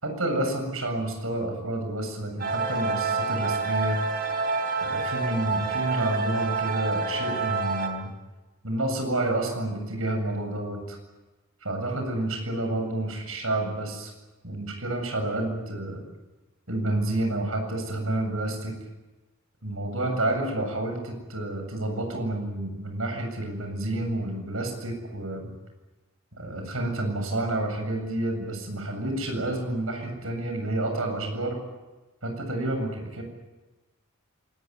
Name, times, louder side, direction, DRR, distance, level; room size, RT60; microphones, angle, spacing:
voice 1, 0.0-4.0 4.8-8.1 8.6-11.0 11.6-14.1 14.4-16.0 16.7-18.8 19.6-25.5 26.4-31.6 32.2-33.2, right 1 dB, 75° right, 4 dB, 7.6 m, -29 dB
sound 1, 2.4-7.9, right 4 dB, 45° right, 3.5 m, -28 dB
27.0 x 20.0 x 9.6 m, 1.1 s
head